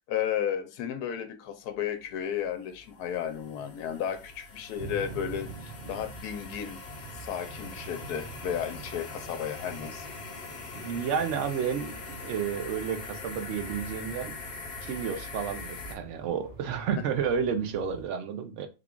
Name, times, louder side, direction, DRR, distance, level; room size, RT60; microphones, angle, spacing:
voice 1, 0.1-6.8 7.1-10.1, left 9 dB, 80° left, 1.1 m, -33 dB
sound 1, 2.1-16.0, left 4 dB, 55° left, 0.8 m, -43 dB
sound 2, 4.7-18.0, right 4 dB, 30° right, 0.9 m, -46 dB
voice 2, 10.7-14.3 14.8-18.7, right 7 dB, 65° right, 0.8 m, -31 dB
3.5 x 2.3 x 3.7 m
omnidirectional pair, 1.6 m